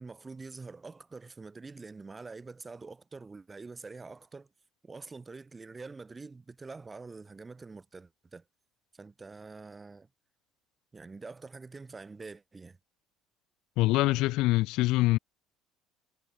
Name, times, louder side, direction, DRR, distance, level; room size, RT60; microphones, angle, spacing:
voice 1, 0.0-4.5 4.8-8.4 8.9-10.1 10.9-12.8, right 4 dB, 25° right, 6.1 m, -46 dB
voice 2, 13.8-15.2, left 19 dB, 70° left, 2.7 m, -24 dB
hypercardioid pair, 70°, 0 cm